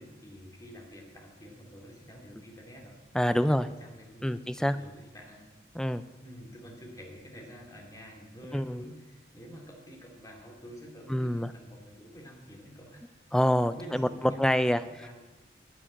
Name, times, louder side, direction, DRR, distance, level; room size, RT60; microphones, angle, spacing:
voice 1, 0.0-3.0 3.3-5.4 5.9-13.0 13.7-15.2, equal, 20° left, 0 dB, 2.4 m, -48 dB
voice 2, 3.1-3.7 4.2-4.8 5.8-6.0 8.5-8.8 11.1-11.5 13.3-14.1 14.4-14.8, equal, 5° left, 12 dB, 0.4 m, -26 dB
11.5 x 7.5 x 8.7 m, 1.2 s
head